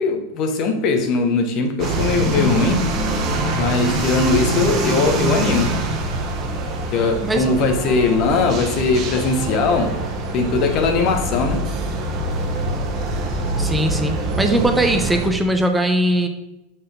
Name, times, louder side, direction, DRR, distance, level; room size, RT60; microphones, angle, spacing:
voice 1, 0.0-2.9 3.5-5.8 6.9-10.0 10.3-11.6, left 3 dB, 45° left, 1.2 m, -20 dB
sound 1, 1.8-15.3, right 2 dB, 40° right, 1.2 m, -24 dB
voice 2, 13.6-16.3, right 1 dB, 10° right, 0.7 m, -20 dB
5.7 x 4.4 x 5.0 m
hypercardioid pair, 90°, 0 cm